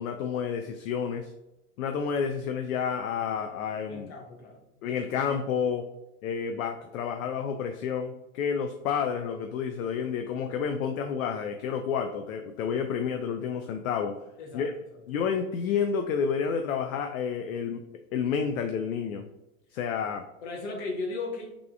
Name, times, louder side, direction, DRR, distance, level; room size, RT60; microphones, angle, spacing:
voice 1, 0.0-1.3 1.8-4.1 4.8-5.9 6.2-14.2 14.5-14.7 15.1-17.8 18.1-19.3 19.7-20.2, left 7 dB, 65° left, 6 dB, 0.5 m, -30 dB
voice 2, 3.9-4.7 14.4-15.0 20.4-21.5, left 3 dB, 50° left, 1 dB, 1.1 m, -36 dB
3.6 x 3.5 x 2.3 m, 0.94 s
hypercardioid pair, 95°, 44 cm